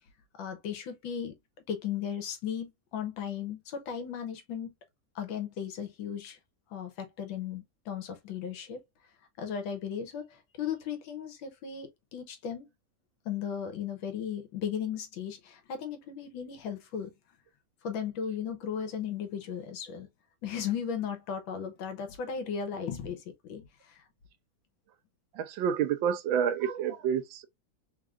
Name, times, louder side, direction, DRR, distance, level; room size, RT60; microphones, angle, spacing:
voice 1, 0.4-1.3 1.7-4.7 5.1-6.4 6.7-8.8 9.4-12.7 13.2-17.1 17.8-20.1 20.4-23.7 24.0-24.1, left 8 dB, 85° left, 1.7 m, -36 dB
voice 2, 25.3-27.5, right 8 dB, 85° right, 1.4 m, -29 dB
3.7 x 3.7 x 2.4 m
omnidirectional pair, 2.1 m